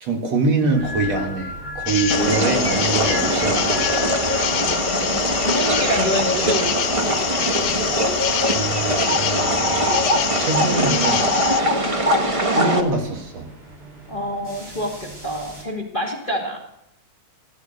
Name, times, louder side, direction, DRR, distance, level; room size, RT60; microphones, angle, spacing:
voice 1, 0.0-3.9 8.5-10.0 10.4-11.3 12.6-13.5, right 3 dB, 65° right, 3 dB, 3.1 m, -24 dB
sound 1, 0.7-15.6, left 2 dB, 80° right, 8.6 m, -37 dB
sound 2, 1.9-11.6, left 10 dB, 90° left, 2.3 m, -26 dB
sound 3, 2.1-12.8, right 1 dB, 35° right, 0.4 m, -22 dB
voice 2, 4.5-7.0 11.7-12.0 14.1-16.6, equal, 20° left, 0 dB, 1.9 m, -28 dB
17.5 x 11.5 x 6.6 m, 0.82 s
omnidirectional pair, 3.3 m